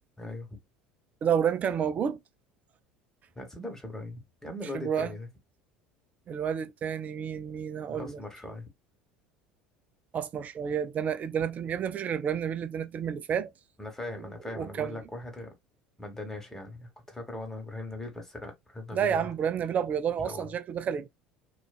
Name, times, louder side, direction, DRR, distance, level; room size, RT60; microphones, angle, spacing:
voice 1, 0.2-0.5 3.3-5.3 7.9-8.7 13.8-15.5 16.0-19.3 20.2-20.5, left 1 dB, 10° left, 1.1 m, -40 dB
voice 2, 1.2-2.2 4.7-5.1 6.3-8.2 10.1-13.5 14.6-15.0 18.9-21.1, right 8 dB, 35° right, 0.4 m, -30 dB
2.4 x 2.3 x 2.3 m
figure-of-eight pair, 70°, 4 cm